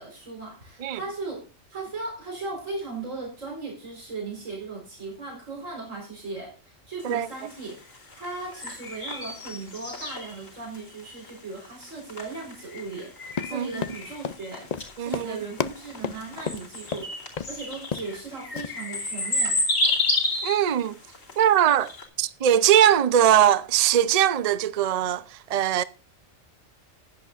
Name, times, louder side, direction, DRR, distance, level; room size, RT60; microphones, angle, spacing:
voice 1, 0.0-1.4 1.7-7.8 8.1-14.7 15.0-19.6, right 3 dB, 80° right, 4.7 m, -37 dB
sound 1, 7.0-22.1, left 2 dB, 85° left, 3.4 m, -31 dB
Run, 13.3-17.1 17.4-17.5 17.8-18.2 18.6-18.7, left 7 dB, 50° left, 0.5 m, -32 dB
voice 2, 15.0-15.4 20.4-21.0 21.4-21.9 22.2-25.8, right 10 dB, 45° right, 0.5 m, -21 dB
16.0 x 10.5 x 2.5 m
omnidirectional pair, 1.3 m